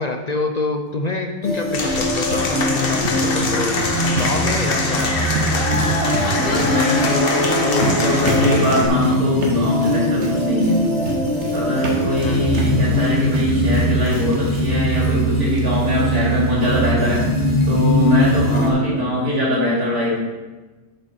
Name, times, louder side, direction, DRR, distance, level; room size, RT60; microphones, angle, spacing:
voice 1, 0.0-3.8 4.1-5.3 12.2-12.6 18.5-18.8, left 3 dB, 60° left, 4 dB, 0.4 m, -26 dB
sound 1, 1.4-18.7, equal, 25° left, 2.6 m, -21 dB
sound 2, 1.4-14.8 15.0-15.1 15.6-15.7 16.0-16.1, right 2 dB, 50° right, 1.6 m, -30 dB
Applause / Crowd, 1.7-8.9, left 2 dB, 45° left, 1.1 m, -24 dB
voice 2, 6.3-10.8 11.5-17.2 17.7-20.2, left 1 dB, 85° right, -7 dB, 3.6 m, -21 dB
12.0 x 5.5 x 4.3 m, 1.2 s
omnidirectional pair, 1.6 m